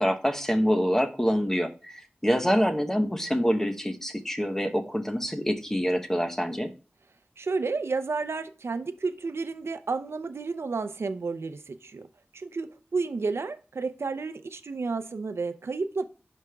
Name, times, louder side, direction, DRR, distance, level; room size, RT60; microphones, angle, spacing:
voice 1, 0.0-6.7, equal, 10° left, 5 dB, 0.8 m, -26 dB
voice 2, 7.4-12.1 12.3-16.0, right 4 dB, 85° right, 11 dB, 0.5 m, -31 dB
10.5 x 4.9 x 2.3 m, 0.35 s
wide cardioid pair, 75°, 4 cm